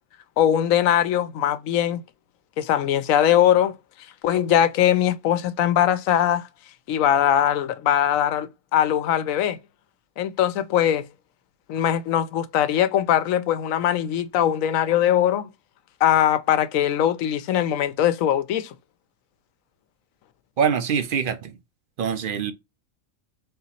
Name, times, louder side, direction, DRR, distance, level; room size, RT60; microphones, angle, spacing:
voice 1, 0.4-2.0 2.6-3.7 4.2-6.5 6.9-9.6 10.2-11.1 11.7-15.5 16.0-18.7, left 10 dB, 80° left, 1.0 m, -21 dB
voice 2, 20.6-21.5 22.0-22.5, right 7 dB, 60° right, 0.6 m, -24 dB
3.7 x 2.9 x 4.1 m
omnidirectional pair, 1.4 m